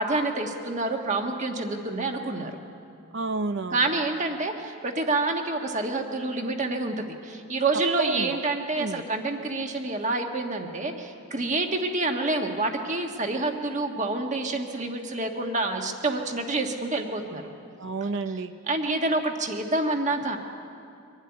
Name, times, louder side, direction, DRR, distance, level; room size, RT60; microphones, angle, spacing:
voice 1, 0.0-2.5 3.7-17.4 18.3-18.4 18.7-20.4, right 2 dB, 35° right, 4 dB, 1.5 m, -28 dB
voice 2, 3.1-3.9 8.0-8.4 8.8-9.0 17.8-18.5, right 3 dB, 55° right, 11 dB, 0.7 m, -30 dB
24.0 x 12.0 x 9.8 m, 2.4 s
head